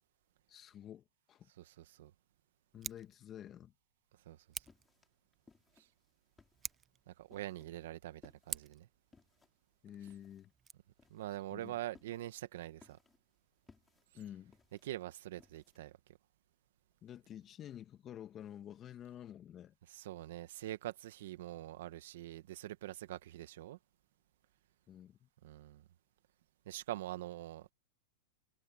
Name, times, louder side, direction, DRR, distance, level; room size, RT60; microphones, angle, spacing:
voice 1, 0.5-1.5 2.7-3.7 9.8-10.5 11.5-11.7 14.1-14.5 17.0-19.7 24.9-25.3, left 10 dB, 25° left, 2.0 m, -50 dB
voice 2, 1.6-2.1 4.2-4.4 5.8-5.9 7.1-8.9 11.1-13.0 14.8-16.0 19.9-23.8 25.4-25.8 26.6-27.7, right 14 dB, 70° right, 1.6 m, -44 dB
Scissors, 2.7-3.1 4.5-4.9 6.5-7.0 8.5-8.9 10.5-10.7, right 7 dB, 20° right, 0.4 m, -44 dB
sound 1, 4.2-15.9, left 4 dB, 10° left, 5.1 m, -67 dB
hypercardioid pair, 140°, 0 cm